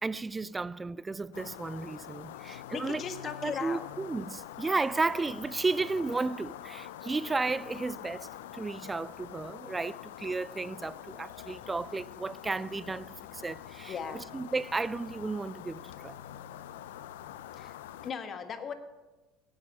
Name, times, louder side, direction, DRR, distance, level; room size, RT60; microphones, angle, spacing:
voice 1, 0.0-3.0 3.4-13.9 14.3-16.2, right 3 dB, 20° right, 0.4 m, -33 dB
sound 1, 1.3-18.1, left 12 dB, 75° left, 0.5 m, -45 dB
voice 2, 2.5-3.9 13.9-14.3 17.6-17.7 18.0-18.7, left 6 dB, 40° left, 1.4 m, -38 dB
18.0 x 8.9 x 5.5 m
hypercardioid pair, 70°, 0 cm